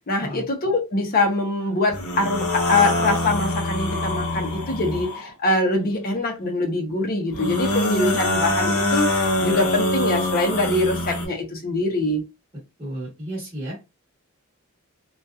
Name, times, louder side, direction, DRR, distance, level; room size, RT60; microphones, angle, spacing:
voice 1, 0.1-12.2, left 2 dB, 45° left, 0.6 m, -23 dB
sound 1, 1.9-5.3 7.3-11.3, left 1 dB, 85° left, 0.9 m, -24 dB
voice 2, 12.8-13.7, right 1 dB, 30° right, 1.1 m, -32 dB
2.7 x 2.3 x 2.2 m
head